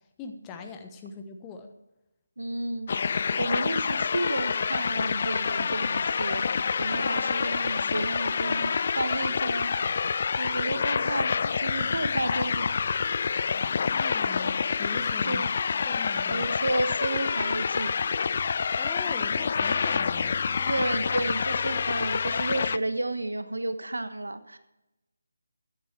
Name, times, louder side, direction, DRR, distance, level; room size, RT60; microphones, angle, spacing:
voice 1, 0.2-1.7 13.9-15.4 15.9-16.5 18.7-20.7, left 4 dB, 15° left, 5 dB, 1.3 m, -40 dB
voice 2, 2.4-2.9 3.4-9.7 10.4-12.8 15.3-15.5 16.3-17.9 20.6-24.6, right 2 dB, 80° right, 10 dB, 1.3 m, -31 dB
sound 1, 2.9-22.8, left 5 dB, 45° left, 0.3 m, -27 dB
sound 2, 5.6-10.6, left 2 dB, 75° left, 0.9 m, -44 dB
14.0 x 9.9 x 4.5 m, 0.96 s
figure-of-eight pair, 155°, 0 cm